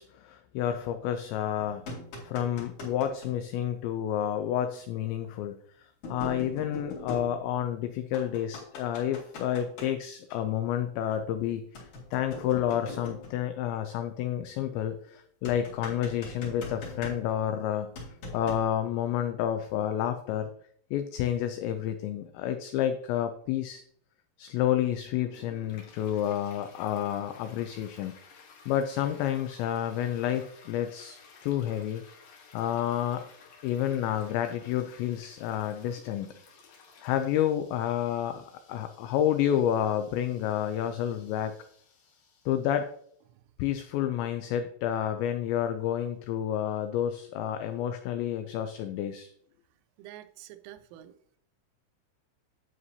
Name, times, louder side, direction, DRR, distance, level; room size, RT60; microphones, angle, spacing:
voice 1, 0.0-2.0 2.2-20.5 20.9-23.8 24.4-28.2 28.7-32.0 32.5-33.2 33.6-36.3 37.0-41.5 42.5-42.9 43.6-49.3, left 10 dB, 90° left, 8 dB, 2.5 m, -30 dB
sound 1, 1.6-3.3 4.8-4.9 6.0-7.8 8.1-9.9 11.8-13.5 15.5-17.5 18.0-18.7, left 2 dB, 50° left, 3.0 m, -41 dB
Toilet flush, 25.1-43.1, left 5 dB, 65° left, 2.2 m, -56 dB
voice 2, 50.0-51.4, right 13 dB, 85° right, 10 dB, 3.0 m, -48 dB
9.7 x 7.7 x 2.7 m, 0.64 s
omnidirectional pair, 5.8 m